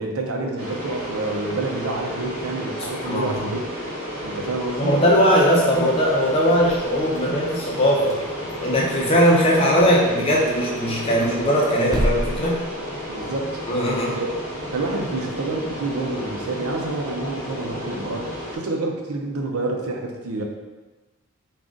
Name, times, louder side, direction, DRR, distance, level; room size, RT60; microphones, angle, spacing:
voice 1, 0.0-3.6 4.2-5.0 13.1-13.5 14.1-14.3 14.7-20.4, right 2 dB, 85° right, 1 dB, 0.6 m, -28 dB
sound 1, 0.6-18.6, equal, 70° right, 1.2 m, -32 dB
voice 2, 3.0-3.4 4.8-8.2 8.6-12.6 13.7-14.2, equal, 25° left, -4 dB, 0.7 m, -19 dB
sound 2, 6.5-7.6 8.0-9.1 9.4-9.5 9.9-10.0 10.3-10.4 10.8-13.4, equal, 20° right, 0.3 m, -31 dB
3.7 x 2.5 x 3.7 m, 1.2 s
head